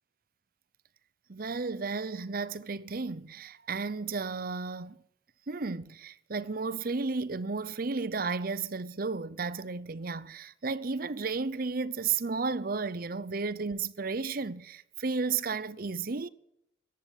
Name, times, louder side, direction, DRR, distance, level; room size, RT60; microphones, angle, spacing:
voice 1, 1.3-5.0 5.5-16.3, right 4 dB, 50° right, 0.7 m, -33 dB
14.0 x 11.0 x 9.2 m
head